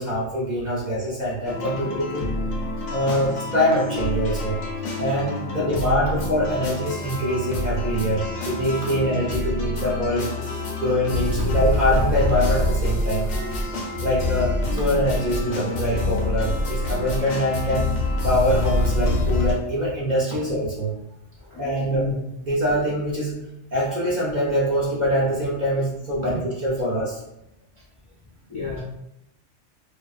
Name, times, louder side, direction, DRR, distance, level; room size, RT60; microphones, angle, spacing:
voice 1, 0.0-2.3 2.9-4.6 5.0-10.3 10.8-13.6 14.0-17.9 18.2-20.9 21.6-22.1 22.4-23.3 23.7-27.2, equal, 55° right, -5 dB, 0.5 m, -24 dB
sound 1, 1.5-19.5, left 1 dB, 85° left, 0.9 m, -26 dB
voice 2, 21.5-22.2 28.5-28.8, left 4 dB, 50° left, -7 dB, 0.3 m, -32 dB
2.4 x 2.3 x 2.3 m, 0.85 s
omnidirectional pair, 1.2 m